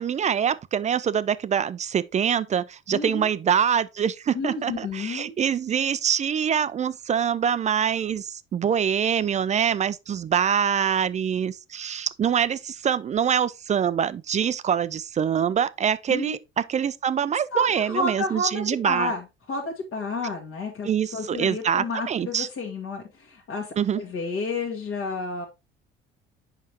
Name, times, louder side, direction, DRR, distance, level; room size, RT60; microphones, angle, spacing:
voice 1, 0.0-19.1 20.8-22.5 23.8-24.0, right 8 dB, 25° right, 0.4 m, -24 dB
voice 2, 2.9-3.3 4.3-5.4 16.1-16.3 17.5-25.4, left 3 dB, 50° left, 1.4 m, -31 dB
7.3 x 5.3 x 2.9 m
figure-of-eight pair, 55°, 29 cm